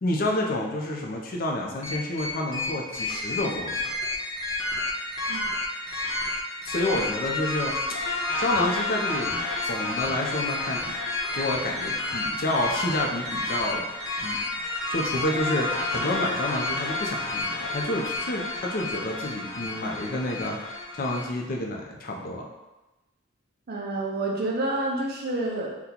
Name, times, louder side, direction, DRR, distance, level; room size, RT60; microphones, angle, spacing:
voice 1, 0.0-3.9 6.6-7.7 8.4-11.0 11.3-13.9 14.2-14.4 14.9-22.5, left 1 dB, 45° left, -1 dB, 0.5 m, -29 dB
sound 1, 1.8-21.3, left 2 dB, 65° left, 0.9 m, -30 dB
voice 2, 23.7-25.8, right 2 dB, 50° right, -1 dB, 0.5 m, -28 dB
2.9 x 2.2 x 3.7 m, 1.1 s
head